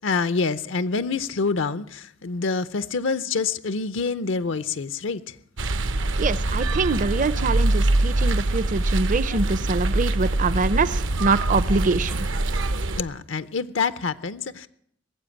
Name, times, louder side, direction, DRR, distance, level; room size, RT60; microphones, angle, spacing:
voice 1, 0.0-5.4 13.0-14.7, left 4 dB, 75° left, 0.6 m, -26 dB
sound 1, 5.6-13.0, right 2 dB, 70° right, 0.8 m, -24 dB
voice 2, 6.2-12.2, right 3 dB, 45° right, 0.6 m, -24 dB
19.5 x 7.8 x 8.7 m
head